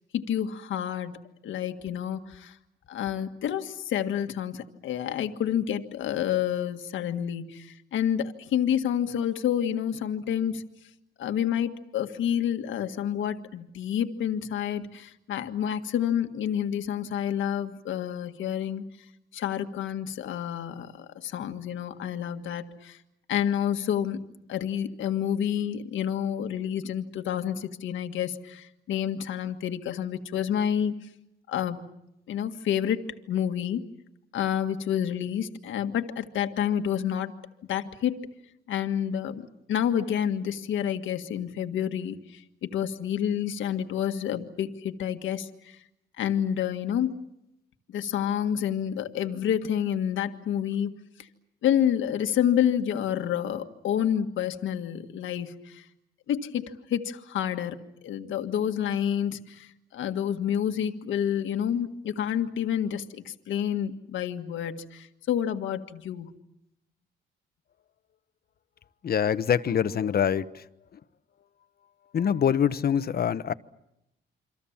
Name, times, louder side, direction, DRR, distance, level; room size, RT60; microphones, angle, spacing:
voice 1, 0.1-1.2 1.4-2.6 2.9-10.6 11.2-18.9 19.3-23.0 23.3-24.2 24.5-30.9 31.5-31.8 32.3-33.9 34.3-37.3 37.7-38.3 38.7-45.8 46.2-47.1 47.9-51.3 51.6-55.8 56.3-66.3, left 9 dB, 75° left, 1.8 m, -29 dB
voice 2, 69.0-70.6 72.1-73.5, left 8 dB, 50° left, 1.1 m, -24 dB
28.0 x 25.5 x 7.3 m
cardioid pair, 90°, 20 cm